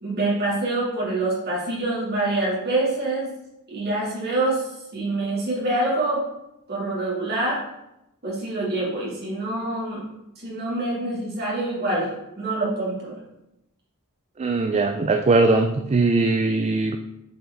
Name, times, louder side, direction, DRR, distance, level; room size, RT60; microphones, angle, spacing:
voice 1, 0.0-3.3 3.7-4.6 4.9-6.2 6.7-7.6 8.2-10.0 10.4-13.2, right 2 dB, 50° right, -5 dB, 2.8 m, -25 dB
voice 2, 14.4-17.0, right 3 dB, 30° right, 6 dB, 0.4 m, -20 dB
7.8 x 4.9 x 3.8 m, 0.88 s
head